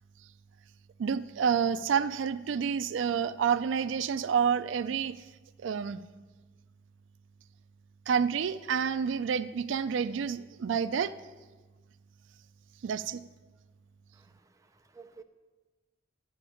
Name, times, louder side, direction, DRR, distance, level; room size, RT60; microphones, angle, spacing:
voice 1, 1.0-5.1 5.6-6.0 8.1-11.1 12.8-13.2, right 7 dB, 75° right, 13 dB, 0.4 m, -29 dB
voice 2, 14.1-15.2, right 4 dB, 15° right, 5 dB, 0.6 m, -54 dB
12.0 x 8.5 x 5.0 m, 1.3 s
head